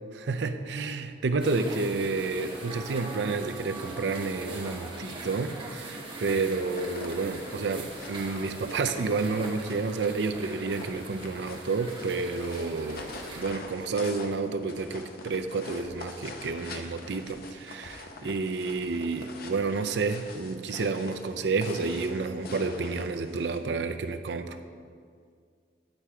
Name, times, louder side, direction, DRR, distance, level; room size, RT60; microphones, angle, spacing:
voice 1, 0.1-13.1 13.3-24.6, right 4 dB, 70° right, 9 dB, 0.5 m, -30 dB
sound 1, 1.4-13.4, right 2 dB, 30° right, 1.1 m, -41 dB
sound 2, 6.5-23.6, left 3 dB, 55° left, 0.7 m, -45 dB
9.9 x 4.9 x 4.4 m, 2.1 s
head